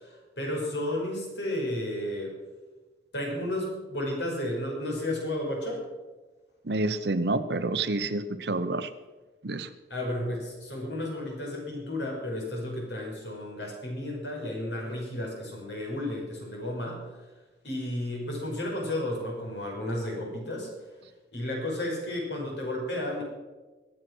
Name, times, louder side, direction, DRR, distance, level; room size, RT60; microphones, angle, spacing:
voice 1, 0.0-2.4 3.1-5.8 9.9-17.3 17.6-21.0 21.3-23.2, left 1 dB, 80° left, -1 dB, 5.7 m, -33 dB
voice 2, 6.6-8.9 9.4-9.7, right 2 dB, 70° right, 11 dB, 0.9 m, -28 dB
22.5 x 7.8 x 6.2 m, 1.2 s
head